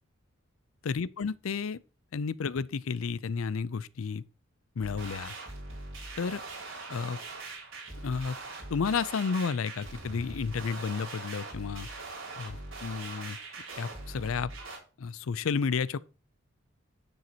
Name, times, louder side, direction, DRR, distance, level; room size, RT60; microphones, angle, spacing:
voice 1, 0.8-1.8 2.1-4.2 4.8-5.4 6.2-6.4 6.9-7.2 8.0-8.3 8.7-11.9 12.4-13.4 13.8-14.5 15.0-16.0, left 5 dB, 80° left, 0.5 m, -32 dB
sound 1, 4.8-14.8, right 3 dB, 70° right, 5.1 m, -42 dB
9.2 x 7.7 x 2.9 m
head